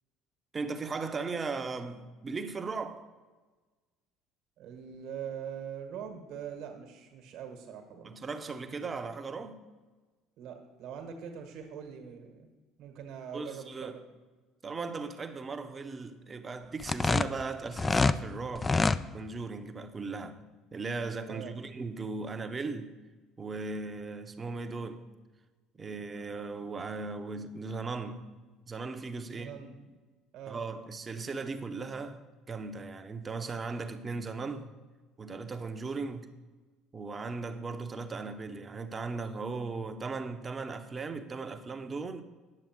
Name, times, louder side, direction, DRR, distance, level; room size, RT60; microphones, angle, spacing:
voice 1, 0.5-3.1 8.0-9.6 13.3-14.0 14.6-18.8 19.1-20.4 20.7-22.9 23.4-25.0 25.7-28.3 28.7-29.5 30.5-32.2 32.5-34.8 35.2-36.3 36.9-42.2, right 4 dB, 30° right, 0.9 m, -37 dB
voice 2, 4.6-8.1 10.4-12.5 12.8-14.0 21.3-21.5 29.3-29.7 30.3-30.6, right 8 dB, 55° right, 1.4 m, -43 dB
sound 1, 16.8-18.2 18.6-19.0, left 3 dB, 25° left, 0.4 m, -26 dB
9.7 x 7.1 x 4.6 m
figure-of-eight pair, 60°, 0 cm